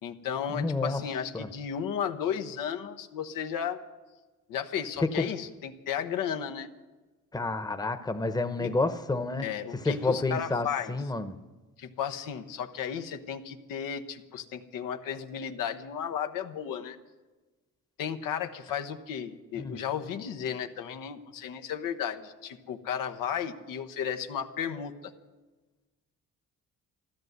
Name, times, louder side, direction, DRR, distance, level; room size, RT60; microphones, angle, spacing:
voice 1, 0.0-3.8 4.5-6.7 8.6-8.7 9.4-11.0 11.8-17.0 18.0-25.1, left 8 dB, 90° left, 1.0 m, -34 dB
voice 2, 0.5-1.0 1.3-1.5 5.2-5.3 7.3-9.4 9.8-11.4 19.6-19.8, left 3 dB, 10° left, 0.9 m, -29 dB
14.0 x 12.0 x 8.0 m
cardioid pair, 85°, 32 cm